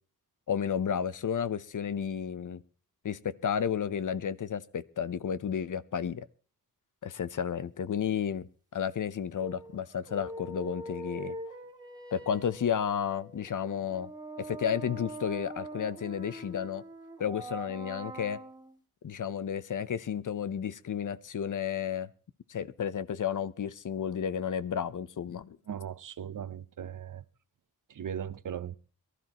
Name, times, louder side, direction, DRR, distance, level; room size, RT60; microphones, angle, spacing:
voice 1, 0.5-2.6 3.0-6.2 7.0-8.5 8.7-11.3 12.1-14.1 14.4-16.8 17.2-18.4 19.0-22.1 22.5-25.6, left 8 dB, 60° left, 0.8 m, -32 dB
sound 1, 9.4-18.8, right 1 dB, 10° right, 2.7 m, -43 dB
voice 2, 25.7-27.2 27.9-28.8, right 9 dB, 60° right, 0.8 m, -38 dB
23.0 x 13.0 x 3.0 m
wide cardioid pair, 100°, 35 cm